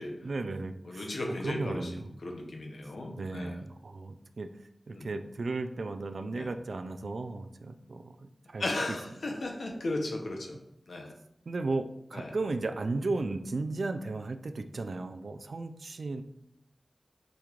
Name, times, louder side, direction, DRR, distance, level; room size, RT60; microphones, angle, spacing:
voice 1, 0.2-2.1 3.2-4.5 4.9-9.0 9.3-9.4 11.5-16.2, right 3 dB, 75° right, 8 dB, 0.3 m, -35 dB
voice 2, 0.9-3.6 4.9-5.1 6.3-6.5 8.6-10.6 10.9-11.1 12.1-12.3, left 2 dB, 80° left, 2 dB, 0.7 m, -36 dB
5.0 x 3.0 x 2.4 m, 0.77 s
wide cardioid pair, 55°, 0 cm